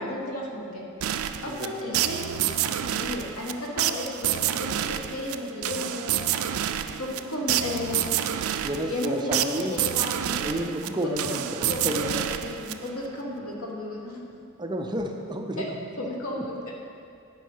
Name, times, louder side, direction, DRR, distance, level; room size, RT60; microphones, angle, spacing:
voice 1, 0.0-2.4 2.7-6.2 6.9-8.3 8.9-10.7 11.2-11.4 11.7-14.2 15.6-15.7 16.0-16.7, left 1 dB, 90° left, -1 dB, 1.4 m, -34 dB
sound 1, 1.0-13.1, right 11 dB, 75° right, 0.4 m, -29 dB
sound 2, 6.8-9.8, left 2 dB, 75° left, 1.2 m, -50 dB
voice 2, 8.6-9.8 10.4-12.1 14.6-16.1 16.4-16.5, right 1 dB, 20° right, 3 dB, 0.6 m, -31 dB
9.1 x 5.5 x 5.5 m, 2.5 s
head